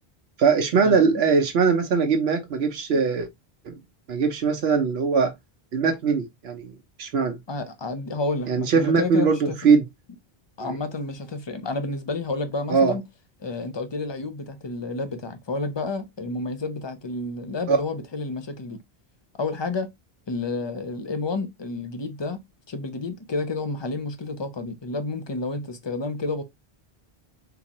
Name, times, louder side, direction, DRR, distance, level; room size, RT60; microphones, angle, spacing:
voice 1, 0.4-3.3 3.6-3.8 4.1-5.3 5.7-6.7 7.0-7.4 8.5-9.8 10.6-10.8 12.7-13.0 17.7-17.8, right 5 dB, 80° right, 0.9 m, -21 dB
voice 2, 7.5-9.7 10.6-13.0 13.4-18.8 19.4-19.9 20.3-22.4 22.7-26.4, left 3 dB, 35° left, 0.5 m, -30 dB
3.8 x 2.6 x 2.8 m
omnidirectional pair, 1.1 m